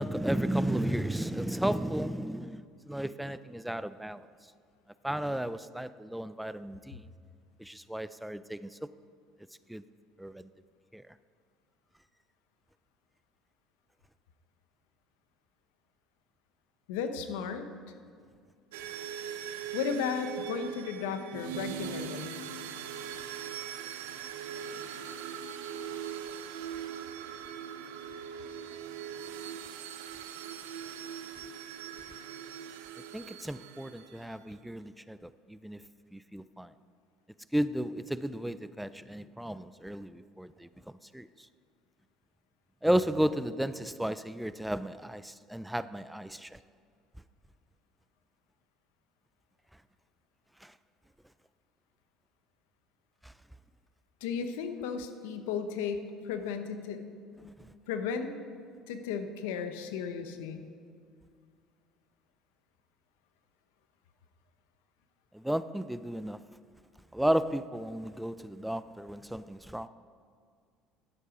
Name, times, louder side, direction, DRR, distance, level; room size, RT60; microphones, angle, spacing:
voice 1, 0.0-4.2 5.0-7.1 7.6-8.8 9.7-9.8 10.2-10.5 10.9-11.0 33.1-35.8 36.1-36.7 37.5-40.7 41.1-41.5 42.8-46.6 50.6-50.7 53.2-53.3 57.5-57.7 65.3-66.4 67.1-69.9, right 1 dB, 5° right, 14 dB, 0.3 m, -33 dB
voice 2, 16.9-17.7 19.7-22.4 54.2-57.0 57.9-58.3 58.9-60.6, left 6 dB, 85° left, 8 dB, 0.8 m, -34 dB
sound 1, 18.7-34.3, right 8 dB, 90° right, 0.6 m, -41 dB
11.0 x 8.0 x 5.0 m, 2.2 s
supercardioid pair, 90°, 0 cm